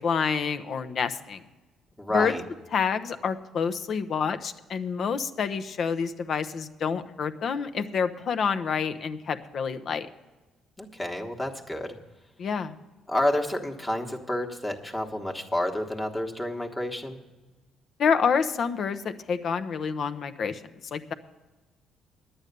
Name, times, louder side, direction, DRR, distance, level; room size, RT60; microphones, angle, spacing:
voice 1, 0.0-1.4 2.1-2.4 2.7-10.1 12.4-12.7 18.0-20.6 20.9-21.1, left 6 dB, 50° left, 10 dB, 0.7 m, -28 dB
voice 2, 2.0-2.4 10.8-12.0 13.1-17.2, left 1 dB, 15° left, 2 dB, 1.2 m, -29 dB
10.5 x 8.9 x 6.7 m, 1.2 s
cardioid pair, 130°, 0 cm